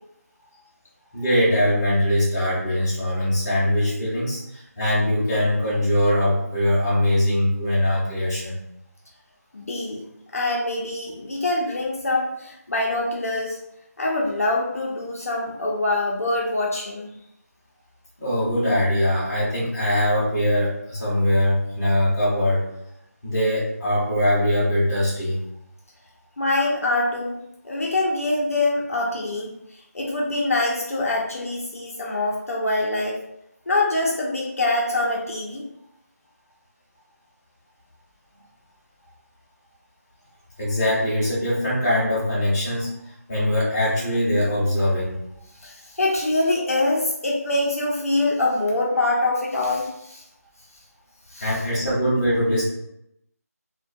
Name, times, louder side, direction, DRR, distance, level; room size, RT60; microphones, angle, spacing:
voice 1, 1.1-8.6 18.2-22.6 23.2-25.4 40.6-45.2 51.4-52.6, left 1 dB, 15° left, -9 dB, 0.7 m, -22 dB
voice 2, 9.5-10.1 10.3-13.6 14.0-17.1 26.4-27.4 27.6-33.2 33.7-35.6 45.6-50.2 51.3-51.6, left 2 dB, 60° left, -2 dB, 0.5 m, -24 dB
2.3 x 2.1 x 2.6 m, 0.79 s
figure-of-eight pair, 170°, 9 cm